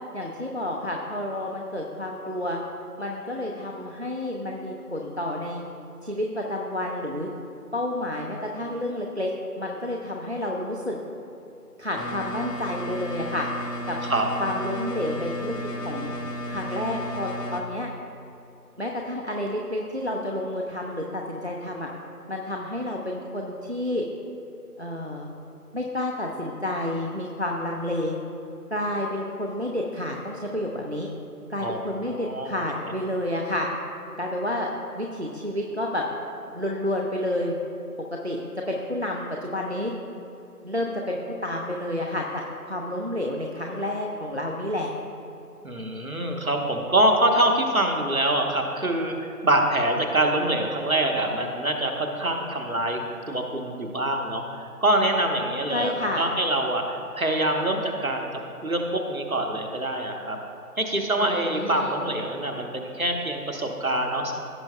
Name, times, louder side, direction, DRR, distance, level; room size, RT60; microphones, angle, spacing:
voice 1, 0.1-2.6 3.0-5.6 6.0-7.3 7.7-9.3 9.6-11.0 11.8-13.5 13.9-14.0 14.4-16.1 16.5-17.9 18.8-21.9 22.3-24.0 24.8-25.3 25.7-28.1 28.7-31.1 31.5-33.7 34.2-34.7 35.0-36.0 36.5-37.6 38.2-38.4 38.7-39.9 40.6-44.9 55.7-56.3 61.2-62.0, left 1 dB, 45° right, -1 dB, 0.6 m, -30 dB
sound 1, 12.0-17.6, equal, 85° left, 1.1 m, -34 dB
voice 2, 32.2-32.6 45.6-53.0 53.3-60.4 60.8-64.3, right 1 dB, 60° right, 3 dB, 1.2 m, -25 dB
16.0 x 6.1 x 2.3 m, 2.8 s
figure-of-eight pair, 170°, 46 cm